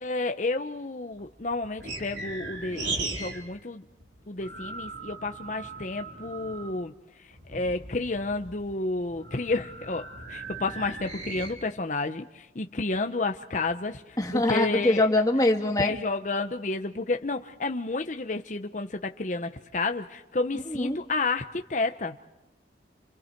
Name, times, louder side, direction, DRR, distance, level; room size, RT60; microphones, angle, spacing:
voice 1, 0.0-3.8 4.3-6.9 7.5-15.1 15.8-22.1, left 3 dB, 40° left, 5 dB, 0.8 m, -31 dB
sound 1, 1.1-3.5 3.7-6.8 7.3-11.5, right 3 dB, 75° right, 4.1 m, -38 dB
voice 2, 14.2-15.9 20.7-21.0, left 2 dB, 20° left, 4 dB, 1.6 m, -23 dB
30.0 x 27.0 x 4.6 m, 0.93 s
head